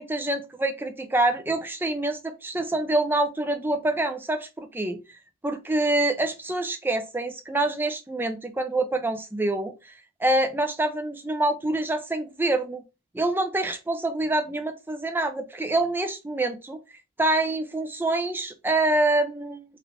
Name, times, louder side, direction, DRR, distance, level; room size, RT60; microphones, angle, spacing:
voice 1, 0.0-5.2 5.4-9.9 10.2-12.8 13.1-16.8 17.2-19.6, right 2 dB, 10° right, 7 dB, 0.3 m, -26 dB
3.6 x 2.4 x 2.8 m, 0.28 s
head